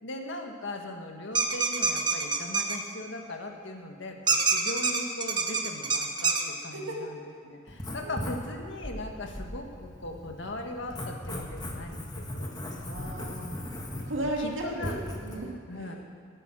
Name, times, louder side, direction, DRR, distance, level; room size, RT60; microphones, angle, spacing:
voice 1, 0.0-12.6 14.0-15.0 15.7-16.0, left 1 dB, 65° left, 3 dB, 1.7 m, -39 dB
sound 1, 1.3-2.8 4.3-6.4, right 4 dB, 25° right, 1.1 m, -26 dB
Writing, 7.7-15.3, left 1 dB, 20° left, 1.9 m, -38 dB
voice 2, 12.8-13.6 14.0-15.5 15.8-16.0, right 1 dB, 75° right, -2 dB, 2.4 m, -35 dB
20.0 x 9.0 x 6.2 m, 2.3 s
head